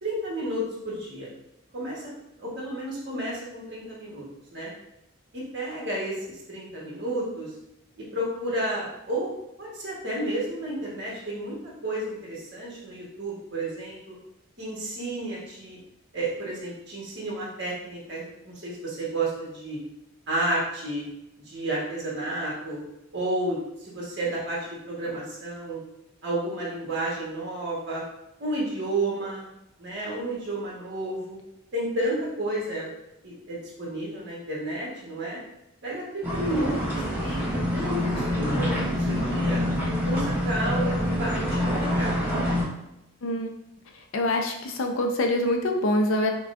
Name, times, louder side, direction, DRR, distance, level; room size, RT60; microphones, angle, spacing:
voice 1, 0.0-1.3 1.7-2.0 2.4-4.2 4.5-4.7 5.3-7.5 8.0-9.3 9.6-14.2 14.6-15.8 16.1-19.8 20.3-21.0 21.5-22.8 23.1-25.8 26.2-28.0 28.4-29.5 29.8-31.4 31.7-32.9 33.2-35.4 35.8-37.4 37.7-39.6 40.0-42.2, right 1 dB, 50° right, -5 dB, 1.3 m, -31 dB
sound 1, 36.2-42.6, left 1 dB, 10° right, 0.9 m, -26 dB
voice 2, 43.2-43.5 44.1-46.3, left 1 dB, 70° left, 3 dB, 0.5 m, -25 dB
5.9 x 2.3 x 2.5 m, 0.88 s
head